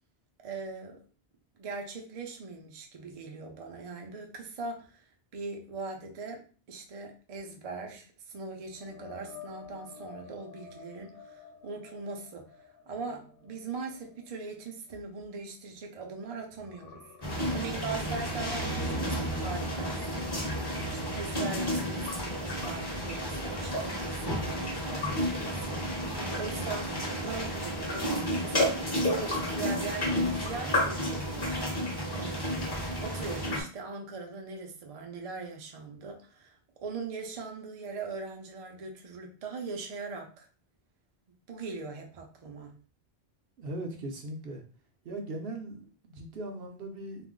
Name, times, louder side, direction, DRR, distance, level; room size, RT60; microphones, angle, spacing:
voice 1, 0.4-1.0 1.6-6.4 6.7-28.1 28.4-28.8 29.0-31.6 32.1-32.6 33.0-40.5 41.5-42.8, right 4 dB, 45° right, 2 dB, 0.5 m, -41 dB
sound 1, 8.7-16.1 16.5-20.3 20.7-20.9 24.3-24.4, left 7 dB, 65° left, 0.8 m, -52 dB
sound 2, 17.2-33.6, equal, 25° left, 0.8 m, -31 dB
voice 2, 43.6-44.6 45.0-47.3, right 1 dB, 70° right, 3 dB, 0.8 m, -39 dB
2.4 x 2.1 x 3.6 m, 0.38 s
omnidirectional pair, 1.1 m